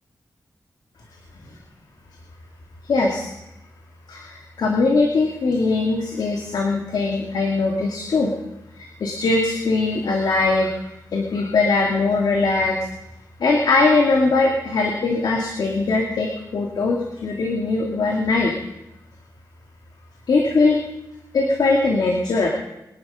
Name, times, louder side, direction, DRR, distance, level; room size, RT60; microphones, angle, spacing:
voice 1, 2.8-3.3 4.1-8.4 8.7-12.9 13.4-18.5 20.3-20.8 21.3-22.5, left 3 dB, 85° left, 1 dB, 2.2 m, -21 dB
22.5 x 11.0 x 5.7 m, 0.92 s
wide cardioid pair, 90°, 7 cm